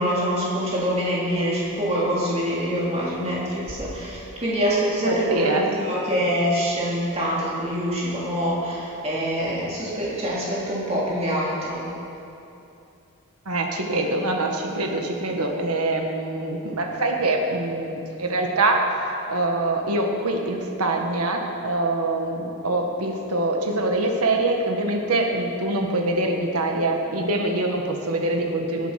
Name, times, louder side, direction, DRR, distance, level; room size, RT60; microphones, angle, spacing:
voice 1, 0.0-11.8, equal, 25° right, -6 dB, 3.0 m, -25 dB
voice 2, 5.1-5.7 13.4-18.9 19.3-28.9, right 2 dB, 85° right, 2 dB, 1.7 m, -24 dB
18.0 x 8.2 x 5.9 m, 2.7 s
head